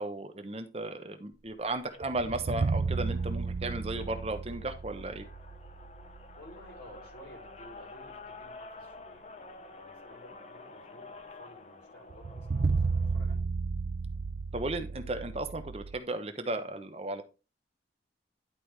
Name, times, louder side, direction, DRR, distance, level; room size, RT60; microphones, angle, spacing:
voice 1, 0.0-5.3 14.5-17.2, right 2 dB, 35° right, 7 dB, 1.0 m, -35 dB
sound 1, 1.8-13.2, left 3 dB, 40° left, 0.8 m, -50 dB
sound 2, 2.0-6.7 7.0-7.1 12.1-16.0, right 4 dB, 60° right, 0.5 m, -33 dB
voice 2, 6.4-13.5, equal, 75° left, -1 dB, 4.8 m, -54 dB
11.0 x 4.9 x 3.4 m, 0.30 s
head